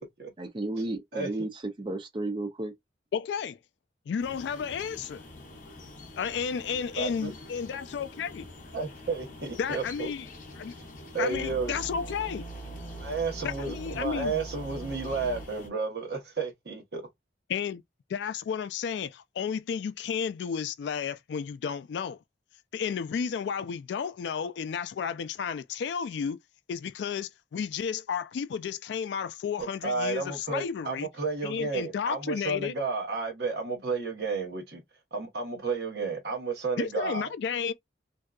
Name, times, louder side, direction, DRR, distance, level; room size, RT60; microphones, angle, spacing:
voice 1, 0.4-1.5 1.8-2.7, right 2 dB, 25° right, 0.5 m, -33 dB
voice 2, 1.1-1.5 7.0-7.3 8.7-10.1 11.1-11.8 13.0-17.0 29.6-34.8 35.1-37.3, right 4 dB, 60° right, 1.0 m, -32 dB
voice 3, 3.1-3.6 4.1-5.2 6.2-8.4 9.6-10.3 10.6-10.7 11.2-12.4 13.4-14.3 17.5-17.8 18.1-22.2 22.7-26.4 26.7-31.1 31.4-32.7 36.8-37.7, left 7 dB, 70° left, 0.3 m, -32 dB
sound 1, 4.2-15.7, left 2 dB, 45° left, 0.7 m, -47 dB
sound 2, 11.3-15.4, right 3 dB, 30° left, 1.1 m, -41 dB
2.7 x 2.2 x 2.3 m
head